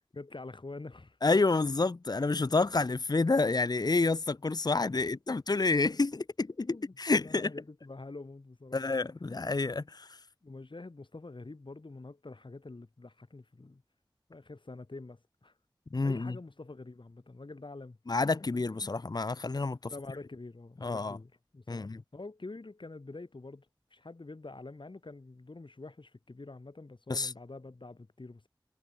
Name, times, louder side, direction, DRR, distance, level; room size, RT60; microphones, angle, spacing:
voice 1, 0.1-1.2 4.9-5.3 6.6-8.8 10.4-13.8 14.3-15.5 16.0-18.0 18.8-18.9 19.9-28.5, left 3 dB, 75° left, 3.4 m, -46 dB
voice 2, 1.2-7.5 8.7-10.1 15.9-16.3 18.1-19.9 20.8-21.2 21.7-22.0 27.1-27.3, left 3 dB, 55° left, 0.6 m, -29 dB
wide cardioid pair, 50°, 8 cm